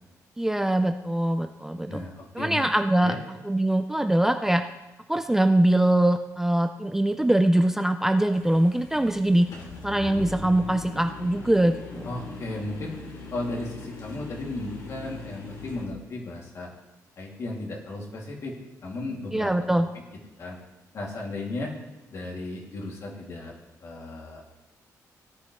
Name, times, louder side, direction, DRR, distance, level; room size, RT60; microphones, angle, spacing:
voice 1, 0.4-2.0 2.4-3.1 3.4-4.6 5.1-9.5 9.8-12.1 19.3-19.9, right 1 dB, 5° right, 7 dB, 0.4 m, -23 dB
voice 2, 1.9-2.6 3.0-3.2 12.0-13.0 13.3-16.7 17.2-18.5 18.8-19.8 20.4-20.6 20.9-21.7 22.1-23.5 23.8-24.4, left 2 dB, 55° left, -2 dB, 2.6 m, -35 dB
sound 1, 8.3-15.9, left 3 dB, 90° left, 3.1 m, -41 dB
17.5 x 11.0 x 3.2 m, 1.0 s
wide cardioid pair, 160°, 6 cm